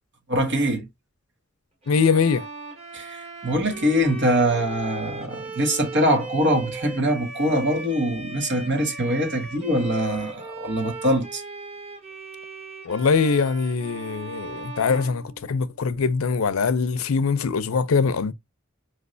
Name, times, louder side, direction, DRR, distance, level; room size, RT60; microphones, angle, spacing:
voice 1, 0.3-0.9 2.9-11.4, equal, 60° right, 1.4 m, -23 dB
Bowed string instrument, 1.8-15.9, right 3 dB, 30° right, 1.3 m, -38 dB
voice 2, 1.9-2.5 12.8-18.3, left 5 dB, 80° left, 0.5 m, -22 dB
4.9 x 3.2 x 2.5 m
head